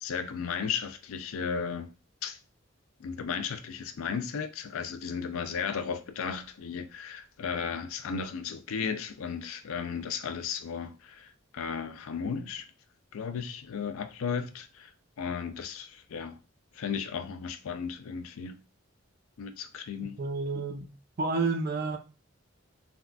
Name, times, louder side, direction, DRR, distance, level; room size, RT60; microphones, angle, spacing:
voice 1, 0.0-1.9 2.2-2.4 3.0-12.6 13.1-14.9 15.2-16.4 16.7-18.6 19.4-20.2, left 6 dB, 85° left, 0.4 m, -35 dB
voice 2, 20.2-20.9 21.2-22.0, right 3 dB, 45° right, 0.5 m, -29 dB
3.5 x 2.3 x 2.2 m
head